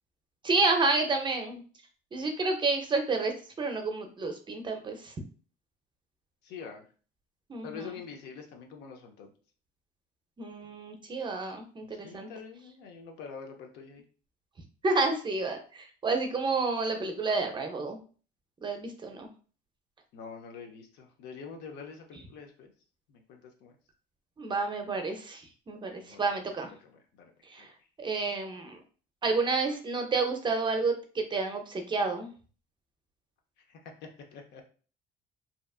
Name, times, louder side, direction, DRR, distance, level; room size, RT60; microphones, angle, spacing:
voice 1, 0.4-1.6 2.1-3.3 3.6-5.1 7.5-8.0 10.4-12.3 14.8-18.0 18.6-19.3 24.4-26.7 27.5-27.7 28.0-28.8 29.2-32.3, right 3 dB, 30° right, 4 dB, 0.5 m, -30 dB
voice 2, 6.4-6.8 7.6-9.3 11.9-14.0 20.1-22.7 23.1-23.7 26.0-26.5 27.2-27.3 27.6-27.7 33.7-33.8 34.3-34.6, left 5 dB, 80° left, 3 dB, 0.6 m, -45 dB
2.7 x 2.3 x 2.3 m, 0.39 s
cardioid pair, 110°, 17 cm